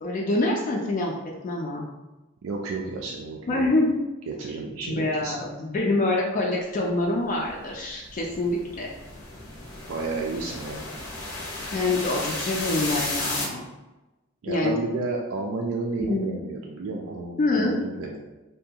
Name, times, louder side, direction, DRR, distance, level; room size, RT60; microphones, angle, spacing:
voice 1, 0.0-1.1 1.4-1.9 3.5-4.0 4.9-8.9 11.7-13.6 14.5-14.8 16.1-16.3 17.4-17.7, left 2 dB, 40° left, -1 dB, 0.3 m, -25 dB
voice 2, 2.4-3.8 4.3-5.5 9.9-10.8 14.4-18.2, right 3 dB, 75° right, -2 dB, 0.3 m, -32 dB
sound 1, 7.4-13.4, left 2 dB, 80° left, 0.8 m, -34 dB
2.6 x 2.3 x 2.7 m, 1.0 s
head